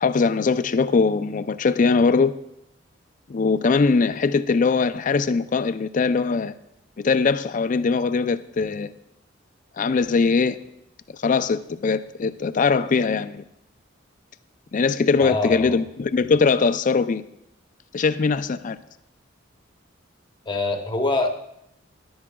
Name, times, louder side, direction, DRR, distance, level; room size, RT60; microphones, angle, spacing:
voice 1, 0.0-2.3 3.3-6.5 7.0-8.9 9.8-10.6 11.2-13.4 14.7-17.2 17.9-18.8, left 4 dB, 40° left, 13 dB, 0.4 m, -21 dB
voice 2, 15.2-15.8 20.5-21.3, left 3 dB, 25° left, 4 dB, 0.9 m, -24 dB
13.0 x 11.0 x 2.3 m, 0.81 s
head